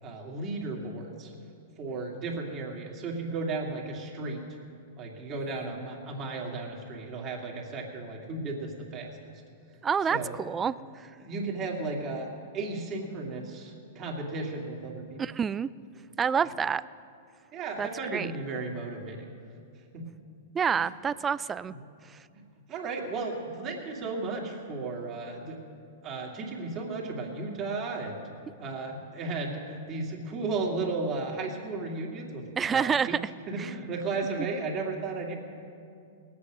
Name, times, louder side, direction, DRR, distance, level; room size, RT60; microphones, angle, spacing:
voice 1, 0.0-1.3 1.8-4.4 5.0-9.3 10.1-10.3 11.2-15.2 17.5-19.3 19.9-20.0 20.7-20.8 21.7-21.8 22.3-22.4 22.7-25.6 26.0-28.2 28.6-33.2 33.5-35.4, right 3 dB, 35° right, -1 dB, 2.5 m, -34 dB
voice 2, 9.8-11.1 15.2-15.7 16.2-16.8 17.8-18.3 20.5-21.7 22.1-22.2 32.6-33.1 33.6-33.7, right 7 dB, 20° right, 18 dB, 0.3 m, -28 dB
19.0 x 8.5 x 6.3 m, 2.5 s
hypercardioid pair, 120°, 0 cm